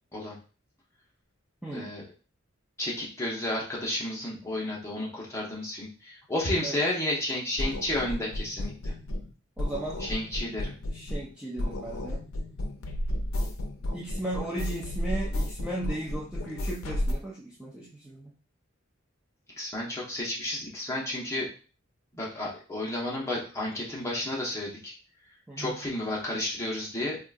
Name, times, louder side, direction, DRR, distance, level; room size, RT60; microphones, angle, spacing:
voice 1, 1.7-2.0 2.8-8.9 10.0-10.7 19.6-21.5 22.1-24.9 25.6-27.2, left 1 dB, 15° left, -5 dB, 0.9 m, -32 dB
sound 1, 7.6-9.3 9.6-11.3 11.6-17.1, left 1 dB, 75° left, 0.5 m, -32 dB
voice 2, 9.6-10.0 10.9-12.3 13.9-18.3 25.5-25.7, right 1 dB, 5° right, -5 dB, 0.3 m, -36 dB
3.6 x 2.3 x 2.5 m, 0.37 s
head